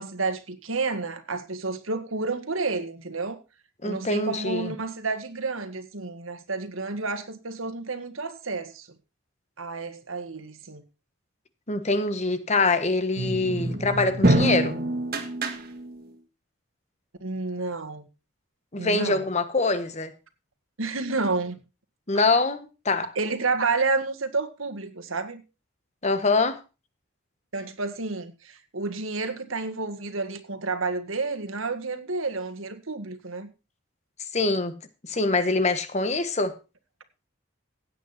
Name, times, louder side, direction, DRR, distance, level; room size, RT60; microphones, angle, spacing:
voice 1, 0.0-3.4 3.8-8.9 9.6-10.8 17.2-18.1 18.8-19.3 20.8-21.6 23.2-25.4 27.5-33.5, right 3 dB, 85° right, 1.8 m, -30 dB
voice 2, 3.8-4.7 11.7-14.8 18.7-20.1 22.1-23.0 26.0-26.6 34.3-36.5, left 3 dB, 35° left, 1.3 m, -24 dB
sound 1, 13.2-16.1, right 1 dB, 45° right, 1.9 m, -26 dB
16.5 x 9.0 x 4.3 m
head